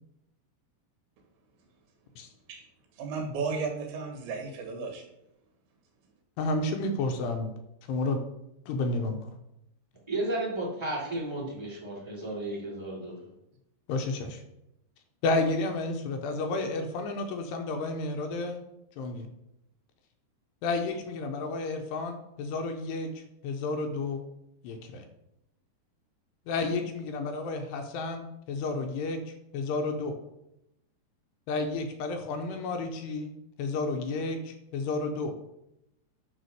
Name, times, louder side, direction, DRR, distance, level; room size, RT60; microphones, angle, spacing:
voice 1, 3.0-5.0, right 4 dB, 80° right, 3.8 m, -34 dB
voice 2, 6.4-7.5 7.9-8.2 8.7-9.2 13.9-14.4 15.2-18.6 19.0-19.3 20.6-24.2 24.6-25.1 26.5-29.2 29.5-30.2 31.5-33.3 33.6-35.3, left 3 dB, 80° left, 2.8 m, -31 dB
voice 3, 10.1-13.1, right 1 dB, 10° right, 1.8 m, -33 dB
10.5 x 3.6 x 6.8 m
omnidirectional pair, 5.2 m